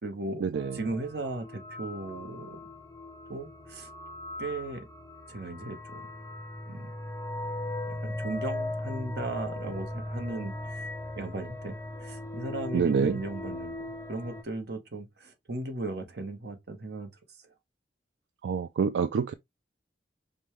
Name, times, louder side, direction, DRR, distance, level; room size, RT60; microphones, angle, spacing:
voice 1, 0.0-0.4 0.7-2.6 3.3-3.9 4.4-4.9 5.3-6.1 6.7-6.9 7.9-10.9 11.2-17.1, right 2 dB, 65° right, 1.0 m, -37 dB
sound 1, 0.5-14.4, left 1 dB, 15° left, 0.5 m, -38 dB
voice 2, 12.7-13.2 18.4-19.3, right 6 dB, 90° right, 0.3 m, -26 dB
5.2 x 2.2 x 3.0 m
head